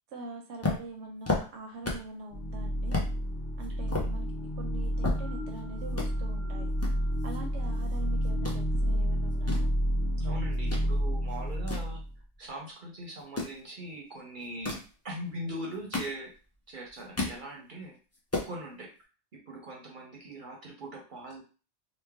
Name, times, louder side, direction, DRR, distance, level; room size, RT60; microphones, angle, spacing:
voice 1, 0.1-3.0 3.6-4.3 4.6-6.7 7.2-9.7, right 2 dB, 80° right, 2 dB, 0.9 m, -43 dB
sound 1, 0.6-2.2 2.5-2.6 2.9-3.1 3.6-5.6 5.9-6.1 6.8-8.0 8.2-8.6 9.2-10.9 11.3-12.6 13.2-13.6 14.4-14.9 15.6-16.5 16.9-17.4 17.8-17.9 18.1-18.5, left 3 dB, 20° left, 0.5 m, -34 dB
sound 2, 2.3-12.1, equal, 55° left, 0.9 m, -30 dB
voice 2, 10.2-12.0 12.4-16.3 16.7-18.0 18.4-18.9 19.3-21.4, right 1 dB, 55° right, 0 dB, 0.7 m, -41 dB
3.1 x 2.1 x 3.4 m, 0.35 s
omnidirectional pair, 1.2 m